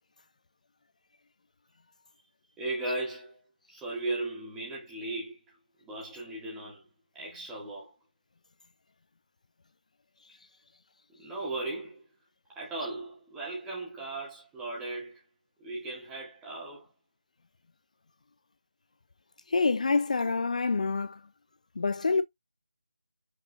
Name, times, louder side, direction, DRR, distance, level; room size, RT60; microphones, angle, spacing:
voice 1, 2.6-6.9 7.1-8.0 11.2-12.0 12.6-15.2 15.6-16.9, right 2 dB, 5° right, 1.7 m, -37 dB
voice 2, 19.5-21.2 21.8-22.2, left 4 dB, 50° left, 0.3 m, -26 dB
5.4 x 3.8 x 2.4 m
figure-of-eight pair, 165°, 5 cm